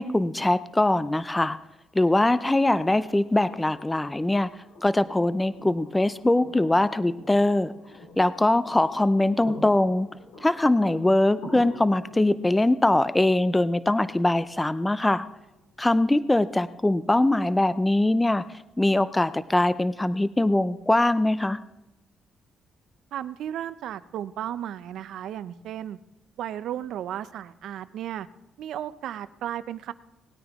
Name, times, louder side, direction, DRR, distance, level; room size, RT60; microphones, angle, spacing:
voice 1, 0.0-1.6 1.9-4.5 4.8-7.7 8.2-10.1 10.4-15.2 15.8-18.4 18.8-21.6, left 1 dB, 15° left, 15 dB, 0.4 m, -22 dB
sound 1, 2.2-16.1 17.9-18.0, left 2 dB, 90° left, 4.3 m, -47 dB
voice 2, 23.1-26.0 26.4-28.3 28.6-29.9, right 11 dB, 75° right, 15 dB, 0.5 m, -34 dB
19.0 x 9.4 x 3.5 m, 0.93 s
cardioid pair, 90°, 0 cm